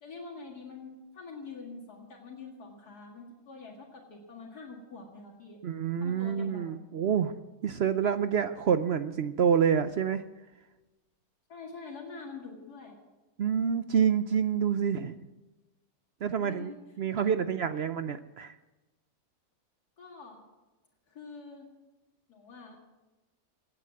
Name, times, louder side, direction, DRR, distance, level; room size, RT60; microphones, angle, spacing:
voice 1, 0.0-5.6 6.0-6.8 11.5-13.0 16.4-16.8 17.1-17.6 20.0-20.4 21.1-21.7 22.3-22.8, left 4 dB, 85° left, -1 dB, 2.6 m, -45 dB
voice 2, 5.6-7.3 7.6-10.2 13.4-15.2 16.2-16.7 17.0-18.5, right 7 dB, 60° right, 11 dB, 0.7 m, -27 dB
17.0 x 9.2 x 7.6 m, 1.1 s
omnidirectional pair, 1.6 m